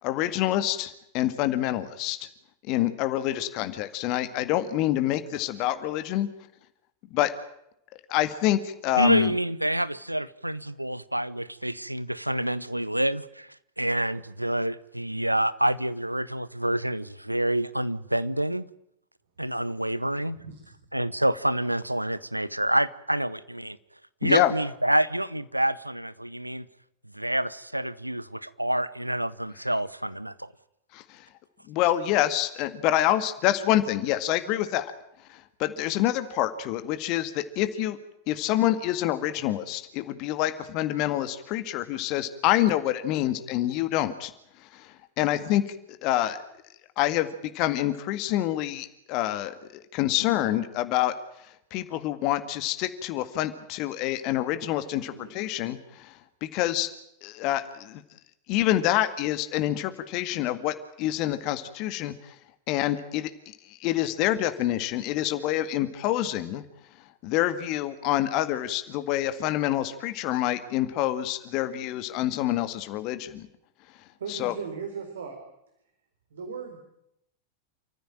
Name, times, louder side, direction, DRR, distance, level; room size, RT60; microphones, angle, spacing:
voice 1, 0.0-2.3 2.6-6.3 7.1-7.3 8.1-9.3 24.2-24.5 30.9-31.3 31.7-34.9 35.3-38.0 38.3-44.3 44.6-45.8 46.0-46.4 47.0-51.1 51.4-56.9 57.2-58.0 58.5-62.4 62.7-66.7 67.2-73.5 74.3-74.5, left 13 dB, 40° left, 10 dB, 1.9 m, -27 dB
voice 2, 9.0-13.5 13.8-18.7 19.4-20.4 20.9-23.8 24.2-26.6 27.1-30.5, right 1 dB, 85° right, 17 dB, 0.9 m, -27 dB
voice 3, 74.2-75.4 76.3-76.8, right 6 dB, 65° right, 4 dB, 4.1 m, -37 dB
29.0 x 15.0 x 8.9 m, 0.79 s
figure-of-eight pair, 90°, 0 cm